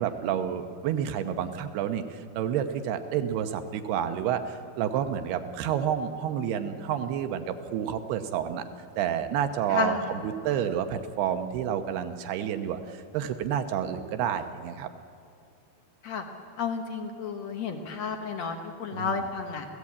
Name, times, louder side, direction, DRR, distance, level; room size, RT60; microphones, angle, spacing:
voice 1, 0.0-8.6 9.0-10.0 10.2-14.9 18.9-19.1, right 9 dB, 75° right, 8 dB, 2.8 m, -29 dB
voice 2, 9.7-10.3 16.0-16.3 16.6-19.7, left 5 dB, 75° left, 4 dB, 1.6 m, -32 dB
27.5 x 16.5 x 8.5 m, 2.5 s
omnidirectional pair, 4.9 m